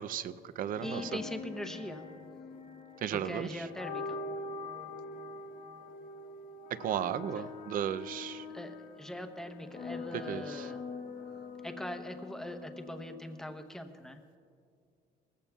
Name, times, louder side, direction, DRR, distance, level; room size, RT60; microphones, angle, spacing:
voice 1, 0.0-1.0 3.0-3.5 6.7-8.4 10.3-10.6, right 10 dB, 55° right, 14 dB, 0.5 m, -35 dB
sound 1, 0.6-13.6, left 3 dB, 45° left, 1.0 m, -44 dB
voice 2, 0.8-2.1 3.1-4.2 7.3-7.5 8.5-10.8 11.6-14.2, equal, 5° left, 6 dB, 0.9 m, -41 dB
20.0 x 15.5 x 2.3 m, 2.4 s
cardioid pair, 110°, 17 cm